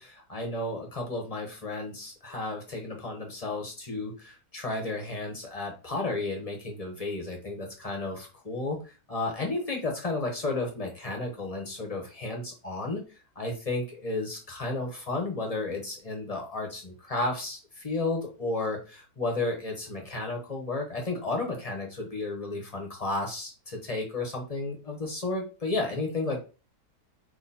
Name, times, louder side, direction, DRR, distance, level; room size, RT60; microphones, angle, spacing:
voice 1, 0.0-13.0 13.4-26.4, left 2 dB, 25° left, 1 dB, 1.0 m, -33 dB
3.9 x 2.7 x 4.2 m, 0.33 s
omnidirectional pair, 1.8 m